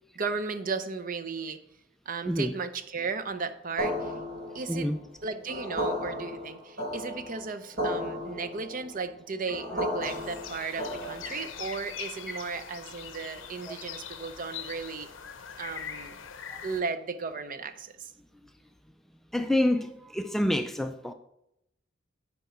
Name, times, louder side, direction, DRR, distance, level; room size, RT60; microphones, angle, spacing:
voice 1, 0.2-1.6 2.1-4.1 4.5-4.9 5.2-15.1 15.6-16.2 16.6-18.1, right 4 dB, 45° right, 0.6 m, -35 dB
sound 1, 3.8-11.6, equal, 70° right, 3.3 m, -34 dB
voice 2, 4.7-5.0 13.7-13.8 19.3-21.1, left 1 dB, ahead, 0.3 m, -27 dB
sound 2, 10.0-16.8, left 8 dB, 80° left, 0.7 m, -42 dB
9.3 x 4.7 x 4.2 m
head